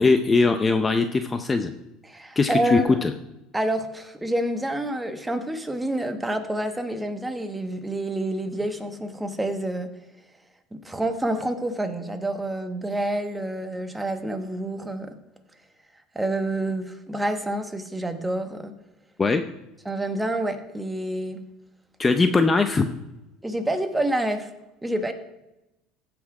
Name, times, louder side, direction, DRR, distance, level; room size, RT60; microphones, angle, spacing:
voice 1, 0.0-1.7 2.4-3.1 19.2-19.4 22.0-22.9, left 3 dB, 20° left, 8 dB, 0.6 m, -20 dB
voice 2, 2.1-3.0 3.5-9.9 10.7-15.2 16.1-18.7 19.8-21.4 23.4-24.5 24.8-25.1, right 1 dB, 10° right, 7 dB, 1.1 m, -28 dB
15.0 x 5.9 x 4.8 m, 0.93 s
supercardioid pair, 125°, 0 cm